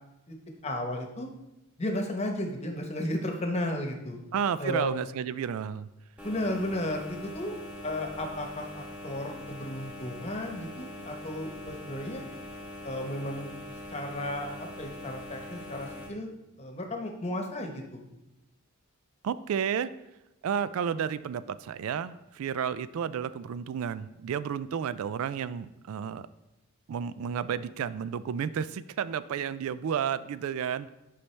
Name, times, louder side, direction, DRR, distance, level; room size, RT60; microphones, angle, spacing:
voice 1, 0.6-1.3 1.8-4.2 4.6-4.9 6.2-7.5 7.8-12.2 12.8-13.5 13.9-18.0, left 1 dB, 30° left, 3 dB, 1.0 m, -34 dB
voice 2, 4.3-5.9 19.2-19.9 20.4-26.3 26.9-30.9, right 8 dB, 70° right, 15 dB, 0.3 m, -31 dB
sound 1, 6.2-16.1, left 1 dB, 5° right, 1.1 m, -43 dB
9.9 x 5.5 x 3.3 m, 0.94 s
head